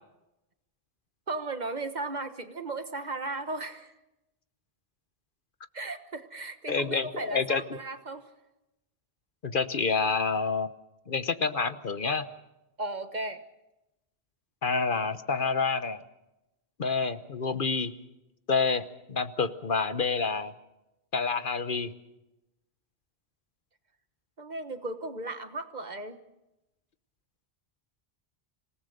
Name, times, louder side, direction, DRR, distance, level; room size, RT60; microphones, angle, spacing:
voice 1, 1.3-3.9 5.7-8.3 12.8-13.4 24.4-26.2, right 2 dB, 45° right, 9 dB, 1.4 m, -36 dB
voice 2, 6.7-7.8 9.4-10.7 11.1-12.3 14.6-16.0 16.8-17.9 18.5-20.5 21.1-21.9, left 4 dB, 55° left, 12 dB, 1.1 m, -28 dB
27.5 x 18.5 x 6.6 m, 0.95 s
omnidirectional pair, 1.1 m